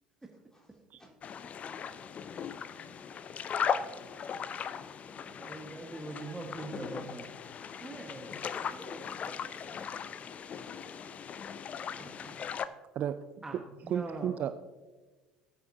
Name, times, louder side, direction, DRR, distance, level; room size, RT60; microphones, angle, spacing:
voice 1, 0.5-1.1 3.8-4.5 7.9-8.0 8.4-11.7 12.0-12.6, equal, 15° left, -3 dB, 3.7 m, -54 dB
sound 1, 1.2-12.7, left 7 dB, 35° left, 0.5 m, -38 dB
voice 2, 5.2-7.4 7.8-8.4 13.4-14.3, right 2 dB, 15° right, 1 dB, 1.5 m, -42 dB
voice 3, 13.9-14.6, right 9 dB, 45° right, 11 dB, 0.4 m, -32 dB
19.0 x 8.5 x 2.8 m, 1.3 s
figure-of-eight pair, 60°, 4 cm